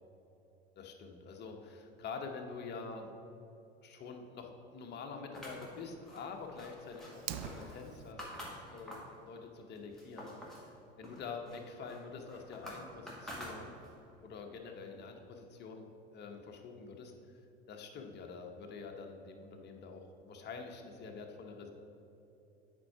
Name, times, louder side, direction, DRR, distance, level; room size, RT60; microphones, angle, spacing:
voice 1, 0.8-3.1 3.8-13.8 14.2-17.1 17.7-21.7, left 4 dB, 35° left, 3 dB, 1.0 m, -46 dB
sound 1, 5.3-9.2 9.6-10.7 11.0-14.1, equal, ahead, 1.8 m, -48 dB
Fire, 7.1-8.1, right 10 dB, 50° right, 0.5 m, -43 dB
8.7 x 4.6 x 4.8 m, 2.8 s
figure-of-eight pair, 80°, 31 cm